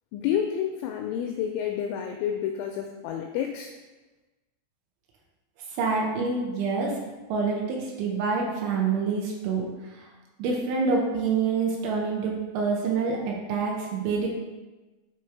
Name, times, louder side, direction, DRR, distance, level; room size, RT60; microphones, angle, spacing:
voice 1, 0.1-3.7, left 9 dB, 85° left, 3 dB, 2.7 m, -29 dB
voice 2, 5.8-7.0 7.3-9.7 9.9-10.1 10.4-14.3, right 4 dB, 75° right, -1 dB, 2.9 m, -27 dB
9.2 x 3.2 x 4.5 m, 1.2 s
omnidirectional pair, 5.9 m